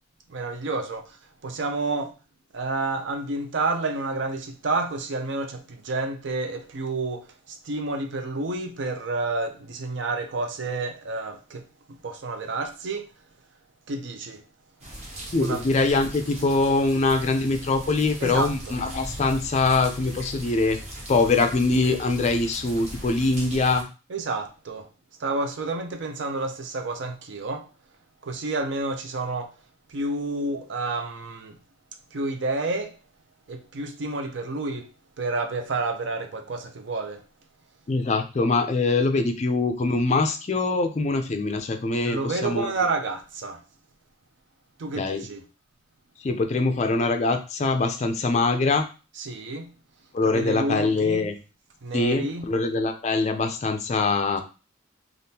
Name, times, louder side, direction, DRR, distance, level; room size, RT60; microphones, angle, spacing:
voice 1, 0.3-1.0 1.4-2.1 2.5-11.6 11.9-13.1 13.9-14.4 15.4-15.6 18.2-18.5 24.1-24.9 25.2-27.7 28.2-29.5 29.9-31.6 32.1-33.0 33.5-34.9 35.2-37.2 42.0-43.6 44.8-45.4 49.2-49.7 50.3-51.3 51.8-52.5, right 3 dB, 60° right, 0.5 m, -29 dB
sound 1, 14.8-23.8, right 1 dB, 35° right, 0.8 m, -39 dB
voice 2, 15.3-20.8 21.1-23.9 37.9-42.7 45.0-45.3 46.2-48.9 50.1-51.3 51.9-54.4, left 3 dB, 35° left, 0.3 m, -23 dB
3.4 x 2.4 x 2.7 m
head